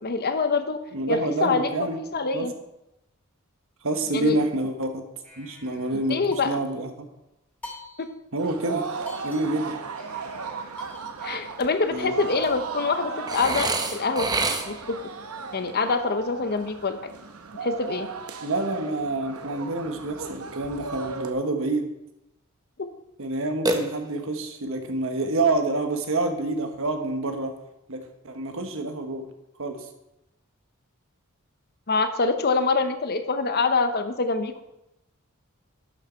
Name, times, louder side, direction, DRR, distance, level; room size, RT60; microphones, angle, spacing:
voice 1, 0.0-0.8 1.1-2.5 4.1-4.4 5.9-6.5 8.0-8.1 11.2-14.3 14.7-15.1 15.5-17.0 17.6-18.1 22.8-22.9 31.9-34.5, left 4 dB, 45° left, 9 dB, 0.8 m, -25 dB
voice 2, 0.9-2.0 2.3-2.5 3.8-5.0 5.4-7.1 8.3-8.9 9.2-9.7 11.9-12.2 18.4-21.9 23.2-27.5 27.9-29.2 29.6-29.9, right 2 dB, 65° right, 6 dB, 1.3 m, -27 dB
sound 1, 5.2-6.9 7.6-8.4 8.7-8.8 9.1-12.5, left 1 dB, 10° left, 2.5 m, -46 dB
sound 2, 8.4-21.3, right 5 dB, 80° right, 0.9 m, -36 dB
Burping eructation, 13.3-15.0 23.6-24.4, right 2 dB, 20° right, 0.8 m, -27 dB
11.5 x 6.5 x 4.5 m, 0.89 s
head